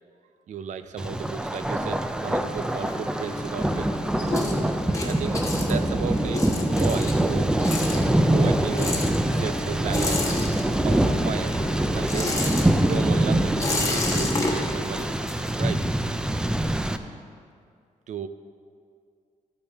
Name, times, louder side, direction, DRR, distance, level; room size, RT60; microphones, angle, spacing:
voice 1, 0.5-3.9 5.0-7.6 8.3-9.0 9.4-10.3 10.8-11.6 11.9-12.4 12.8-15.1 15.6-15.9 18.1-18.3, right 7 dB, 60° right, 11 dB, 0.5 m, -34 dB
Thunder, 1.0-17.0, right 1 dB, 5° right, 0.4 m, -24 dB
sound 1, 1.9-3.5 3.9-11.1 11.3-16.0, left 2 dB, 20° left, 1.2 m, -31 dB
sound 2, 2.3-14.5, left 3 dB, 45° left, 1.1 m, -39 dB
13.0 x 8.7 x 3.5 m, 2.3 s
cardioid pair, 125°, 14 cm